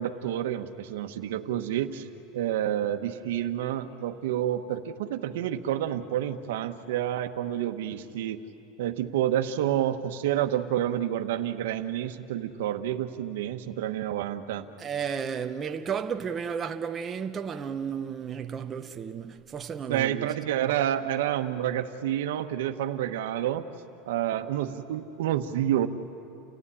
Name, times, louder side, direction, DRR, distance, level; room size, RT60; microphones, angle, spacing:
voice 1, 0.0-2.0 2.3-8.4 8.8-14.6 19.9-23.7 24.0-25.9, right 11 dB, 90° right, 1.1 m, -29 dB
voice 2, 14.8-20.3, right 7 dB, 20° right, 0.7 m, -33 dB
29.5 x 15.5 x 10.0 m
supercardioid pair, 160°, 0 cm